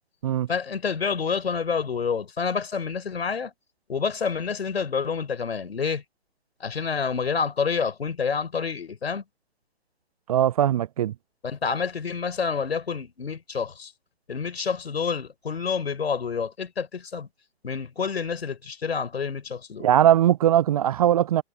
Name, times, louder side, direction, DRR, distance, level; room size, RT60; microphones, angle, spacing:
voice 1, 0.5-3.5 3.9-6.0 6.6-9.2 11.4-13.9 14.3-17.3 17.6-19.9, left 5 dB, 65° left, 5.4 m, -28 dB
voice 2, 10.3-11.1 19.8-21.4, right 11 dB, 35° right, 0.8 m, -20 dB
figure-of-eight pair, 130°, 33 cm